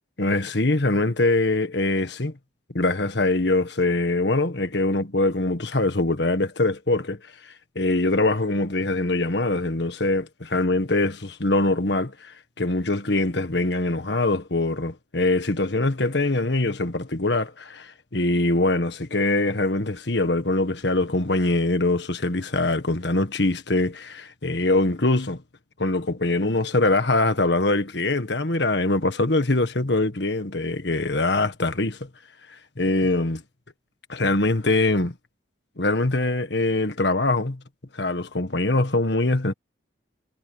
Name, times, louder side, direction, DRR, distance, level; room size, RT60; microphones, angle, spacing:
voice 1, 0.2-2.3 2.7-7.2 7.7-25.4 25.8-32.1 32.8-33.4 34.1-35.1 35.8-37.6 37.9-39.5, left 2 dB, 60° left, 1.7 m, -23 dB
head